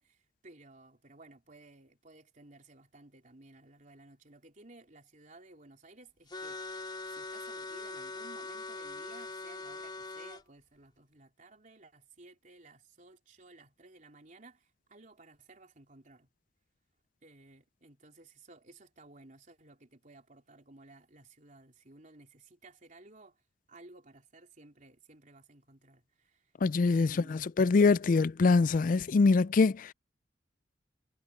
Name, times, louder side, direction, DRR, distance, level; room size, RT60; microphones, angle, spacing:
voice 1, 0.0-6.6 7.1-16.3 17.2-23.4 23.7-26.5 26.8-27.5, right 2 dB, 45° right, 3.6 m, -56 dB
sound 1, 6.3-10.4, left 3 dB, 25° left, 2.8 m, -42 dB
voice 2, 26.6-29.9, left 4 dB, 45° left, 0.4 m, -24 dB
head